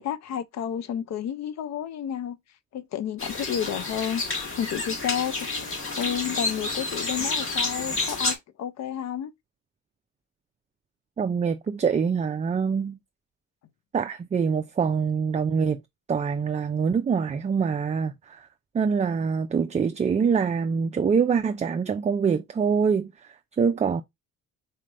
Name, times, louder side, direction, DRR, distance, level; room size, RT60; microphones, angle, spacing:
voice 1, 0.0-2.4 2.7-4.2 4.6-5.4 6.0-9.3, left 9 dB, 60° left, 0.6 m, -31 dB
sound 1, 3.2-8.4, left 3 dB, 45° left, 1.6 m, -29 dB
voice 2, 11.2-13.0 13.9-15.8 16.1-18.4 18.7-24.0, right 6 dB, 25° right, 0.4 m, -25 dB
4.1 x 3.2 x 2.5 m
cardioid pair, 90°, 30 cm